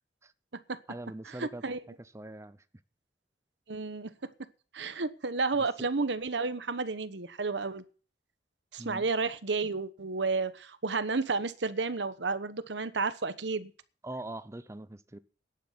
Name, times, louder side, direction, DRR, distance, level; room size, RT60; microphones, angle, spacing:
voice 1, 0.9-2.6 5.8-5.9 8.8-9.0 14.0-15.2, right 1 dB, 15° right, 0.6 m, -42 dB
voice 2, 1.4-1.8 3.7-4.3 4.7-7.8 8.7-13.7, right 4 dB, 90° right, 1.1 m, -31 dB
10.5 x 9.9 x 7.8 m
head